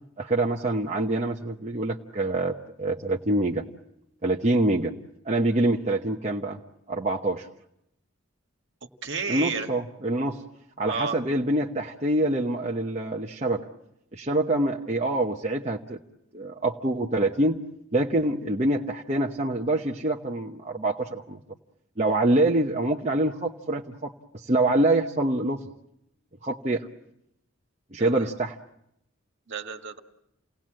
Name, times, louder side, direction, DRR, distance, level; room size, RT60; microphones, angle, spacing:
voice 1, 0.2-3.6 4.2-4.9 5.2-6.6 6.9-7.5 9.3-10.4 10.8-13.6 14.1-16.0 16.3-17.6 17.9-21.4 22.0-25.6 26.4-26.9 27.9-28.6, right 2 dB, 30° right, 0 dB, 1.0 m, -25 dB
voice 2, 9.0-9.7 10.8-11.2 28.0-28.3 29.5-30.0, right 5 dB, 55° right, 4 dB, 1.8 m, -31 dB
29.0 x 18.5 x 7.7 m, 0.81 s
head